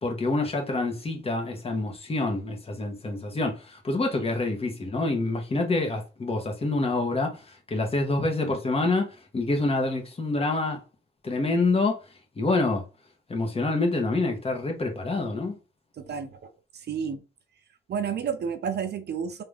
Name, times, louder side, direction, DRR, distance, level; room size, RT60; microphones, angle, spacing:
voice 1, 0.0-10.8 11.2-12.0 12.4-12.8 13.3-15.5, left 2 dB, 30° left, 1.6 m, -27 dB
voice 2, 16.0-17.2 17.9-19.4, right 7 dB, 55° right, 0.8 m, -31 dB
3.7 x 3.6 x 3.5 m
cardioid pair, 90°, 20 cm